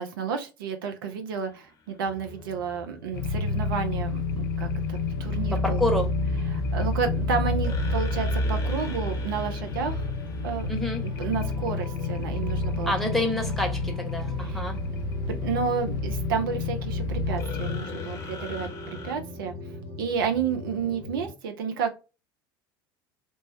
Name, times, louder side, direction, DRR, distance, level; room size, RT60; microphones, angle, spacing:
voice 1, 0.0-5.8 6.5-10.0 10.4-10.7 11.0-12.9 14.4-14.6 15.3-19.7 20.0-22.0, right 6 dB, 65° right, 0.5 m, -31 dB
sound 1, 1.3-2.0 7.6-11.8 17.4-19.1, left 4 dB, 25° left, 0.9 m, -41 dB
sound 2, 2.0-21.3, left 1 dB, 40° right, 1.3 m, -42 dB
sound 3, 3.1-17.8, left 3 dB, 60° left, 0.5 m, -29 dB
voice 2, 5.5-6.1 10.7-11.0 12.8-14.8, left 1 dB, ahead, 1.0 m, -28 dB
3.2 x 2.1 x 2.6 m
figure-of-eight pair, 70°, 12 cm